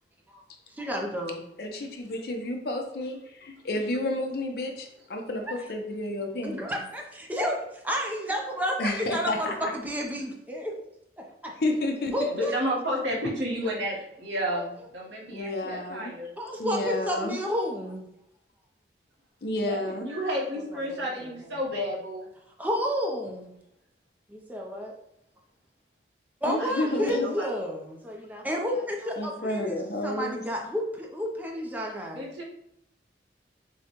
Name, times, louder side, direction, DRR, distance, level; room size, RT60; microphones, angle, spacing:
voice 1, 0.7-1.4 5.4-5.6 6.4-7.6 7.8-10.7 11.2-11.5 12.1-12.6 14.5-14.7 16.4-18.1 20.5-21.5 22.6-23.5 24.3-24.9 26.4-32.3, equal, 10° right, 0 dB, 0.5 m, -31 dB
voice 2, 1.6-3.2 3.6-6.8 8.8-9.7 11.6-12.4 15.3-16.1 16.6-17.4 19.4-20.1 26.4-27.4 29.2-30.4, left 1 dB, 60° left, 3 dB, 0.7 m, -30 dB
voice 3, 12.3-16.3 19.6-22.3 26.6-27.5 32.0-32.4, equal, 90° right, -3 dB, 1.2 m, -32 dB
6.4 x 2.2 x 2.9 m, 0.79 s
head